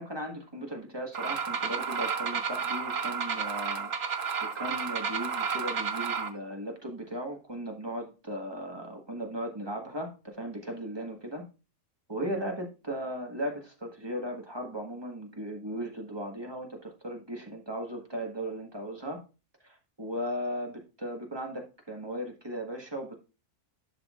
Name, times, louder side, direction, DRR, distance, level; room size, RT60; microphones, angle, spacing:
voice 1, 0.0-3.9 4.4-11.4 12.1-19.2 19.6-23.2, equal, 15° right, 1 dB, 1.5 m, -37 dB
sound 1, 1.1-6.3, right 6 dB, 50° right, 1.1 m, -31 dB
11.0 x 6.3 x 2.5 m, 0.31 s
omnidirectional pair, 1.6 m